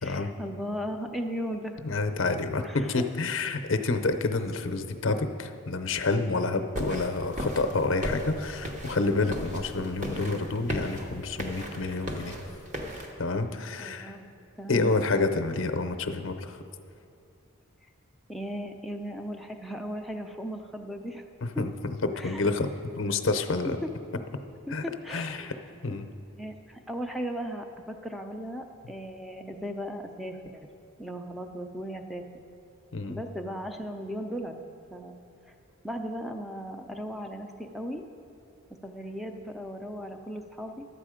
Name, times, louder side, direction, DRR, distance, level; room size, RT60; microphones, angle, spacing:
voice 1, 0.0-1.8 2.6-3.0 13.8-14.3 14.6-14.9 18.3-21.2 21.5-21.6 22.2-22.4 23.8-23.9 24.7-25.5 26.4-30.7 31.0-32.3 33.1-34.6 34.9-35.2 35.4-35.5 35.8-38.0 38.8-40.9, equal, ahead, 4 dB, 0.5 m, -37 dB
voice 2, 1.8-12.3 13.2-14.2 14.7-16.6 21.4-22.7 23.0-23.8 24.7-25.5 25.8-26.1 32.9-33.2, left 3 dB, 60° left, 7 dB, 0.6 m, -28 dB
sound 1, 6.7-13.1, equal, 35° right, 1.0 m, -36 dB
12.0 x 8.3 x 5.0 m, 2.6 s
head